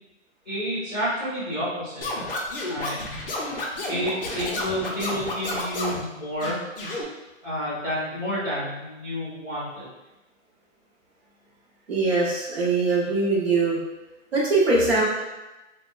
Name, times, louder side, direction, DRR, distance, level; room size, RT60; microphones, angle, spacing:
voice 1, 0.4-2.1 2.7-3.0 3.9-6.6 7.4-9.9, equal, 5° left, -15 dB, 0.7 m, -29 dB
Scratching (performance technique), 2.0-6.0 6.4-7.0, left 2 dB, 45° left, 0.5 m, -31 dB
voice 2, 11.9-13.8 14.3-15.0, right 3 dB, 50° right, -5 dB, 0.9 m, -22 dB
3.4 x 2.1 x 2.4 m, 1.0 s
hypercardioid pair, 180°, 39 cm